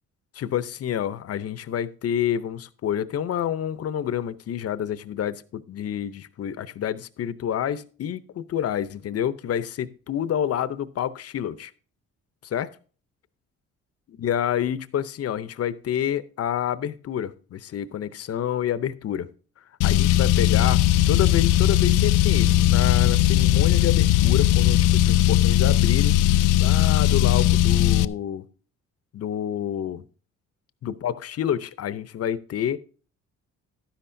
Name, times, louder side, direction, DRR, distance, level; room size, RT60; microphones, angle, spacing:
voice 1, 0.3-11.7 12.4-12.7 14.2-19.3 19.8-26.2 26.6-28.4 29.1-30.0 30.8-32.8, left 10 dB, 50° left, 0.7 m, -28 dB
Car, 19.8-28.1, left 13 dB, 85° left, 0.5 m, -18 dB
12.0 x 10.0 x 2.7 m
cardioid pair, 90°, 30 cm